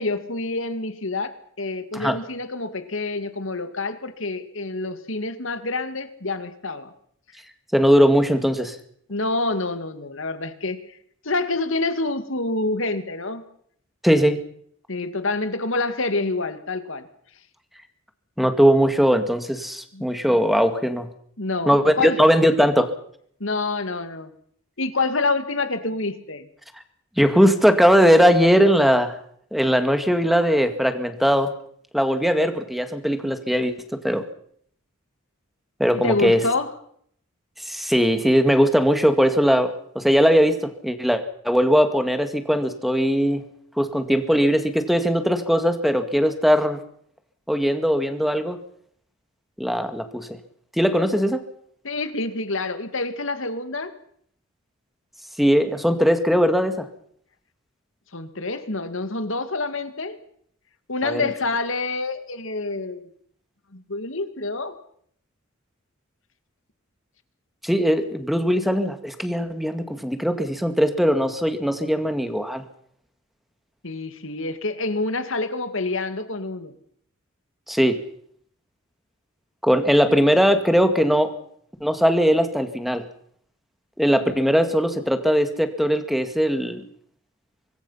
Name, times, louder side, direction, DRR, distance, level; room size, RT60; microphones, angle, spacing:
voice 1, 0.0-6.9 9.1-10.8 11.2-13.4 14.9-17.1 19.9-20.0 21.4-22.2 23.4-24.3 24.8-26.5 35.9-36.7 51.8-53.9 58.1-60.2 60.9-63.1 63.7-64.7 73.8-76.7, left 3 dB, 65° left, 10 dB, 2.2 m, -27 dB
voice 2, 7.7-8.8 14.0-14.4 18.4-21.1 21.7-22.9 27.2-29.1 29.5-31.5 31.9-34.2 35.8-36.4 37.7-43.4 43.8-46.8 47.5-48.6 49.6-50.4 50.8-51.4 55.4-56.8 61.0-61.2 67.6-72.6 77.7-78.0 79.6-81.3 81.8-83.0 84.0-86.8, equal, ahead, 8 dB, 2.1 m, -19 dB
25.0 x 21.0 x 5.7 m, 0.64 s
head